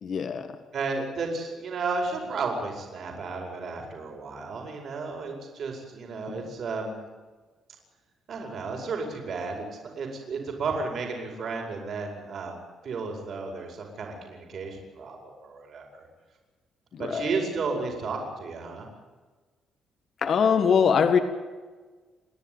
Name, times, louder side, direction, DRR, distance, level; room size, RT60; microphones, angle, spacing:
voice 1, 0.0-0.5 6.3-6.5 16.9-17.3 20.2-21.2, left 6 dB, 50° left, 8 dB, 1.7 m, -23 dB
voice 2, 0.7-7.1 8.3-16.1 17.0-18.9, right 4 dB, 55° right, 2 dB, 5.3 m, -33 dB
29.0 x 11.0 x 9.6 m, 1.4 s
cardioid pair, 120°, 0 cm